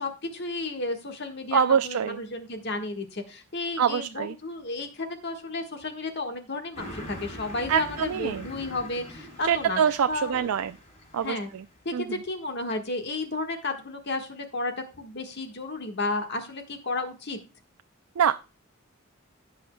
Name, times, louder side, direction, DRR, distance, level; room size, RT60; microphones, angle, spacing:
voice 1, 0.0-9.8 10.1-10.5 11.2-11.5 11.8-17.4, left 2 dB, 50° left, 5 dB, 1.5 m, -32 dB
voice 2, 1.5-2.2 3.8-4.4 7.7-8.5 9.4-10.8 11.1-11.7 11.9-12.2 18.2-18.4, right 8 dB, 90° right, 11 dB, 0.4 m, -25 dB
Car passing by, 6.7-11.7, equal, 30° left, 3.7 m, -43 dB
16.5 x 5.6 x 2.2 m, 0.32 s
head